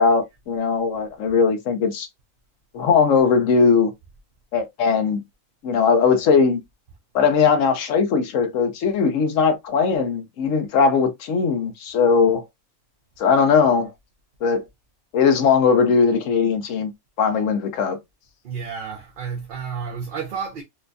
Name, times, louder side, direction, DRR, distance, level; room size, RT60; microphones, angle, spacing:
voice 1, 0.0-2.1 2.7-3.9 4.5-5.2 5.6-6.6 7.1-12.4 13.2-13.9 14.4-14.6 15.1-16.9 17.2-18.0, left 5 dB, 85° left, 1.1 m, -19 dB
voice 2, 18.4-20.6, right 6 dB, 50° right, 0.7 m, -31 dB
4.2 x 2.2 x 2.5 m
omnidirectional pair, 1.3 m